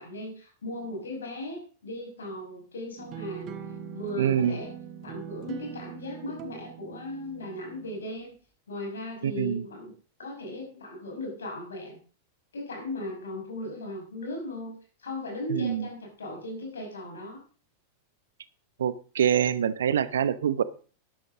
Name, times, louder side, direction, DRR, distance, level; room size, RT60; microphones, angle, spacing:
voice 1, 0.0-3.6 3.9-4.7 5.0-8.3 8.7-9.9 10.2-12.0 12.5-17.4, left 1 dB, 70° left, 5.6 m, -37 dB
sound 1, 3.0-8.0, right 9 dB, 35° right, 1.6 m, -42 dB
voice 2, 4.2-4.6 9.2-9.6 15.5-15.9 18.8-20.6, right 8 dB, 65° right, 0.9 m, -25 dB
13.5 x 10.5 x 3.8 m
figure-of-eight pair, 90°, 0 cm